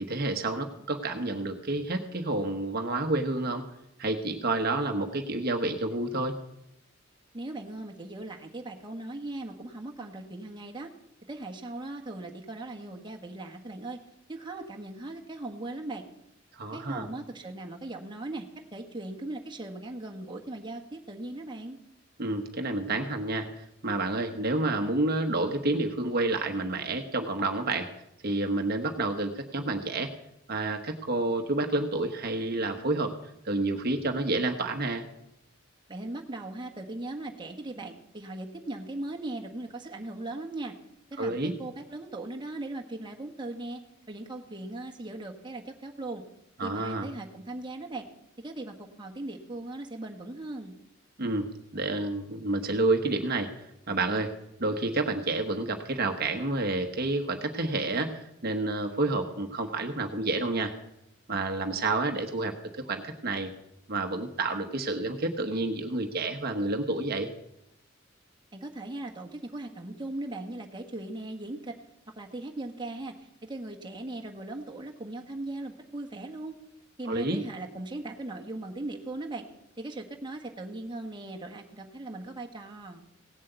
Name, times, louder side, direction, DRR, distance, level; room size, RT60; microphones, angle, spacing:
voice 1, 0.0-3.6 4.0-6.3 16.5-17.1 22.2-27.9 28.2-30.1 30.5-33.1 33.4-35.0 41.2-41.5 46.6-47.1 51.2-51.5 51.7-53.5 53.9-54.3 54.6-60.7 61.3-63.5 63.9-67.3 77.1-77.4, right 2 dB, 50° right, 5 dB, 1.1 m, -29 dB
voice 2, 7.3-10.9 11.3-14.0 14.3-16.0 16.7-21.8 35.9-40.7 41.1-43.8 44.1-46.2 46.6-48.1 48.4-50.8 68.5-71.8 72.2-76.5 77.0-79.5 79.8-83.0, right 2 dB, 25° right, 2 dB, 1.4 m, -39 dB
17.5 x 7.6 x 8.0 m, 0.83 s
head